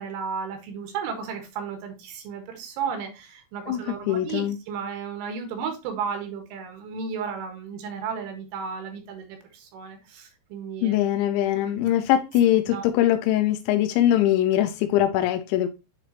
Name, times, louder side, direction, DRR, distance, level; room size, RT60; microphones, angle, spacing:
voice 1, 0.0-11.0 11.5-11.9 12.7-12.8, right 6 dB, 75° right, 3.8 m, -34 dB
voice 2, 3.7-4.6 10.8-15.7, left 12 dB, 85° left, 2.7 m, -22 dB
10.0 x 3.9 x 2.8 m
omnidirectional pair, 5.9 m